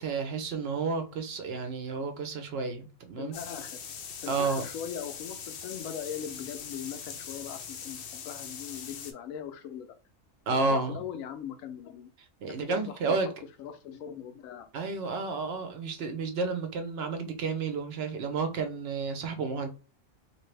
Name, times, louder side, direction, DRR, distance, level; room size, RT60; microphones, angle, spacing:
voice 1, 0.0-3.4 4.3-4.6 10.5-11.0 12.4-13.3 14.7-19.7, right 4 dB, 60° right, 0.8 m, -31 dB
voice 2, 3.2-3.8 4.2-9.9 10.7-12.1 12.6-13.2 13.6-14.7 19.6-19.7, left 8 dB, 90° left, 1.0 m, -40 dB
sound 1, 3.3-9.1, left 7 dB, 65° left, 0.6 m, -41 dB
2.8 x 2.6 x 3.2 m
omnidirectional pair, 1.4 m